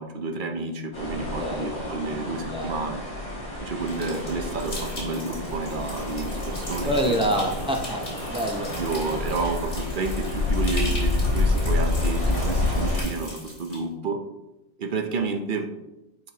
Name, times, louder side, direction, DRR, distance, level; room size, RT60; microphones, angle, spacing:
voice 1, 0.0-3.0 3.6-7.5 8.8-14.2 14.8-15.7, right 3 dB, 45° right, 5 dB, 0.7 m, -30 dB
sound 1, 0.9-13.0, left 2 dB, 60° left, 3.0 m, -28 dB
sound 2, 3.9-13.8, left 1 dB, 40° left, 2.4 m, -40 dB
voice 2, 6.8-8.7, right 1 dB, 10° right, 1 dB, 0.3 m, -27 dB
9.7 x 4.5 x 2.9 m, 0.97 s
omnidirectional pair, 1.4 m